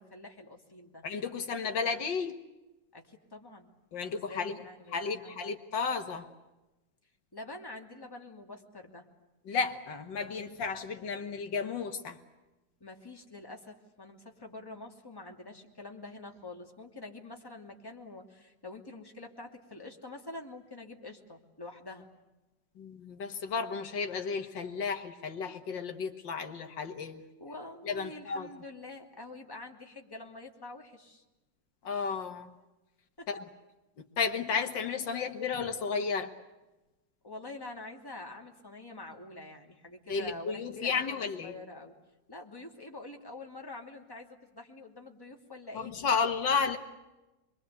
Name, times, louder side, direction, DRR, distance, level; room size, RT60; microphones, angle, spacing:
voice 1, 0.0-1.0 2.9-5.6 7.3-9.1 12.8-22.1 27.4-31.2 33.2-33.3 37.2-41.9 42.3-45.9, left 2 dB, 10° left, 1 dB, 2.8 m, -46 dB
voice 2, 1.0-2.3 3.9-4.5 4.9-6.3 9.5-12.2 22.8-27.2 27.9-28.5 31.8-32.5 33.3-33.4 34.2-36.3 40.1-41.5 45.7-46.8, left 5 dB, 80° left, 6 dB, 2.3 m, -33 dB
26.5 x 23.0 x 8.2 m, 1.0 s
omnidirectional pair, 2.0 m